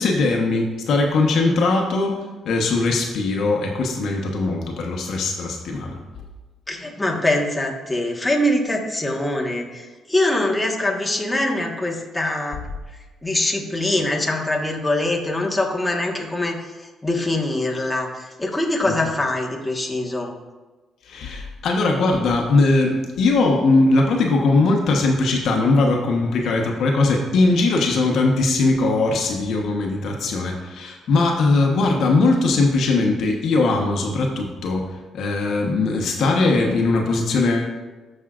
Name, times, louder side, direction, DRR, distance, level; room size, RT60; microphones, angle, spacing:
voice 1, 0.0-6.0 18.8-18.9 21.0-37.7, left 3 dB, 70° left, 1 dB, 1.1 m, -20 dB
voice 2, 6.7-12.6 13.2-20.3, left 1 dB, 10° left, -1 dB, 1.4 m, -23 dB
14.0 x 5.5 x 2.5 m, 1.2 s
cardioid pair, 90°, 0 cm